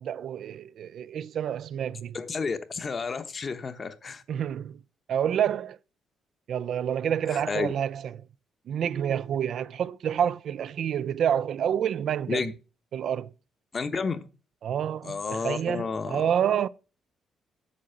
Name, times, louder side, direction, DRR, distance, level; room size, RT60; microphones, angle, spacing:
voice 1, 0.0-2.2 4.3-4.8 5.1-5.8 6.5-8.0 8.7-12.5 12.9-13.3 14.6-16.7, right 9 dB, 65° right, 0.4 m, -28 dB
voice 2, 2.1-4.2 7.3-7.7 12.3-12.5 13.7-14.3 15.0-16.3, left 5 dB, 40° left, 1.0 m, -31 dB
8.4 x 6.3 x 5.7 m
cardioid pair, 90°, 0 cm